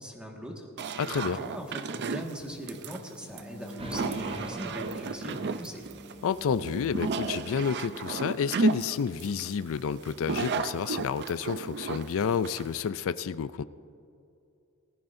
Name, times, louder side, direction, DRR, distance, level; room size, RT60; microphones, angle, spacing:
voice 1, 0.0-5.8, equal, 5° right, 0 dB, 1.7 m, -41 dB
sound 1, 0.8-12.9, right 4 dB, 50° right, 0.5 m, -33 dB
voice 2, 1.0-1.4 6.2-13.6, left 6 dB, 65° left, 14 dB, 0.4 m, -30 dB
Wind instrument woodwind instrument, 3.3-8.4, equal, 80° left, 2.8 m, -48 dB
sound 2, 3.8-8.0, right 1 dB, 25° right, 0.9 m, -46 dB
19.0 x 15.0 x 2.6 m, 2.6 s
head